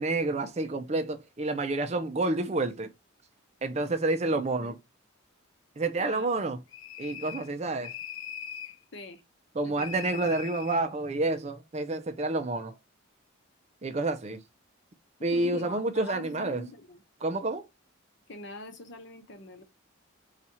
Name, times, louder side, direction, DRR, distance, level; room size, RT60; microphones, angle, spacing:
voice 1, 0.0-2.9 3.6-4.8 5.8-6.6 7.0-7.9 9.6-12.7 13.8-14.4 15.2-16.7 17.2-17.7, right 2 dB, 30° right, 0.5 m, -29 dB
voice 2, 4.3-4.7 6.0-6.3 8.9-9.2 9.6-9.9 15.3-17.0 18.3-19.6, left 1 dB, 55° left, 1.0 m, -43 dB
sound 1, 6.7-7.5 7.8-8.8 9.8-10.8, left 9 dB, 75° left, 0.4 m, -41 dB
4.2 x 2.4 x 4.1 m
head